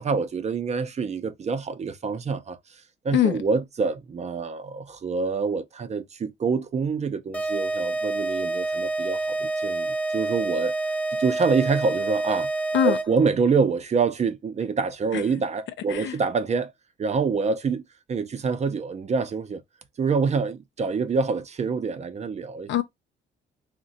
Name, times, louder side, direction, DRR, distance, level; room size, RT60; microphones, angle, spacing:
voice 1, 0.0-10.7 11.2-12.5 12.8-16.7 17.0-19.6 20.0-22.7, right 5 dB, 35° right, 0.5 m, -26 dB
voice 2, 3.1-3.4 12.7-13.0 15.1-15.2 15.9-16.2 22.7-22.8, left 10 dB, 70° left, 0.4 m, -22 dB
sound 1, 7.3-13.3, right 2 dB, 5° left, 0.7 m, -28 dB
2.7 x 2.2 x 3.9 m
cardioid pair, 90°, 20 cm